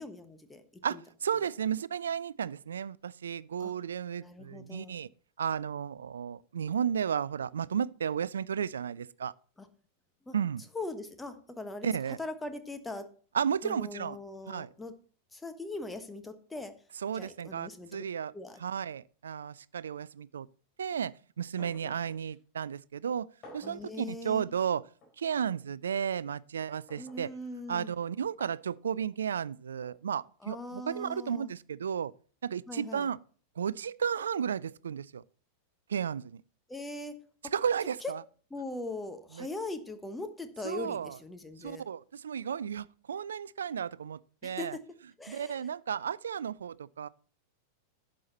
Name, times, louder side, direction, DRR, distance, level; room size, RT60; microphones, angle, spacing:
voice 1, 0.0-0.6 0.9-1.0 3.6-3.7 4.2-5.0 9.6-9.7 10.2-10.3 10.7-11.9 12.2-13.0 13.6-14.9 15.3-16.7 17.1-18.0 18.3-18.6 21.6-21.9 23.6-24.5 27.0-27.9 30.4-31.5 32.7-33.1 36.7-37.1 37.4-37.5 38.0-38.1 38.5-41.8 44.4-44.8 45.2-45.7, left 2 dB, 10° left, 1.2 m, -40 dB
voice 2, 0.8-5.1 5.4-9.3 10.3-10.6 11.8-12.2 13.3-14.2 14.5-14.7 17.0-18.3 18.6-20.5 20.8-23.3 23.5-24.8 25.2-27.3 27.7-32.1 32.4-33.2 33.6-35.2 35.9-36.4 37.5-38.2 39.3-39.5 40.6-41.2 41.6-44.8 45.3-47.1, right 8 dB, 65° right, 0.3 m, -33 dB
sound 1, 21.6-21.9 22.3-22.4 23.4-23.9 25.0-25.2 26.9-27.2 28.4-28.6 29.8-30.0, left 1 dB, 30° left, 4.6 m, -52 dB
11.0 x 7.5 x 4.1 m
figure-of-eight pair, 90°, 0 cm